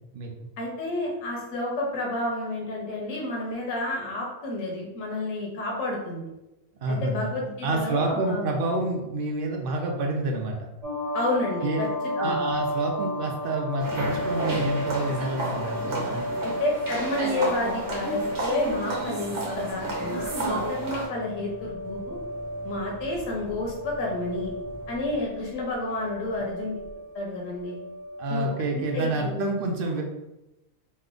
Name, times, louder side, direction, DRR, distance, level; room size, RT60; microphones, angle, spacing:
voice 1, 0.6-6.3 6.9-8.5 11.1-11.9 12.2-12.4 16.4-22.2 22.6-24.5 24.9-26.8 27.1-27.8 28.3-28.5 28.7-29.3, left 1 dB, 75° left, -2 dB, 1.1 m, -30 dB
voice 2, 6.8-7.3 7.6-10.7 11.6-11.8 12.2-16.2 28.2-30.0, right 2 dB, 60° right, 1 dB, 0.6 m, -28 dB
sound 1, 10.8-28.9, equal, 15° right, 1.2 m, -34 dB
sound 2, 13.8-21.1, right 1 dB, 75° right, 1.3 m, -32 dB
sound 3, 16.6-16.7 16.9-27.6, left 2 dB, 40° left, 0.7 m, -47 dB
3.2 x 2.1 x 3.7 m, 0.96 s
omnidirectional pair, 1.4 m